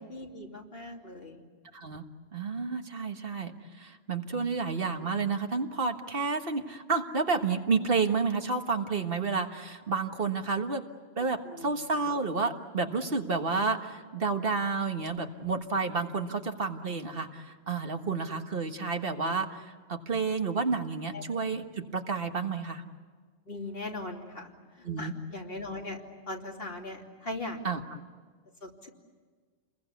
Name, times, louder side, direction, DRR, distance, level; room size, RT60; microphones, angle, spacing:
voice 1, 0.0-1.4 11.4-11.7 21.1-21.2 23.5-24.5 24.8-26.0 26.3-27.6 28.6-28.9, left 2 dB, 65° left, 0 dB, 3.3 m, -39 dB
voice 2, 1.7-2.0 2.3-10.8 11.2-22.8 24.8-25.1 27.6-28.0, right 4 dB, 60° right, 5 dB, 1.7 m, -30 dB
29.0 x 21.5 x 8.4 m, 1.5 s
omnidirectional pair, 1.1 m